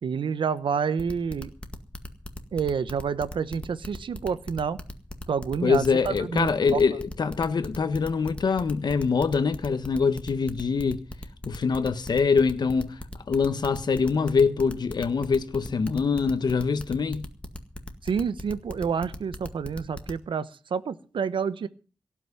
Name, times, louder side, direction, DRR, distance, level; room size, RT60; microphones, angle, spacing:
voice 1, 0.0-1.5 2.5-4.8 5.3-6.8 18.0-21.7, right 6 dB, 85° right, 1.0 m, -28 dB
sound 1, 1.0-20.2, left 1 dB, 15° left, 1.9 m, -38 dB
voice 2, 5.6-11.0 11.4-13.0 13.3-17.2, left 5 dB, 60° left, 1.3 m, -24 dB
17.5 x 6.1 x 9.8 m
wide cardioid pair, 135°, 8 cm